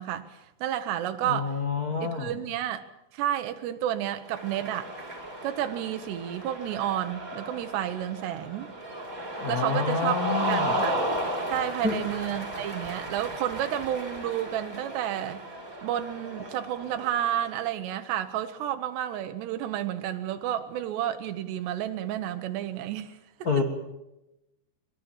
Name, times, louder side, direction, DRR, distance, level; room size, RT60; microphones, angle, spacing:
voice 1, 0.0-1.6 2.0-2.9 3.1-4.9 5.4-8.7 9.5-10.2 10.4-11.0 11.5-15.4 15.8-23.2, right 11 dB, 90° right, 3.2 m, -31 dB
voice 2, 1.2-2.4 9.4-10.8 11.8-12.0 23.4-23.6, left 5 dB, 60° left, 0.9 m, -28 dB
Cheering, 4.2-17.7, right 1 dB, 20° right, 4.1 m, -34 dB
24.0 x 21.0 x 7.3 m
omnidirectional pair, 4.7 m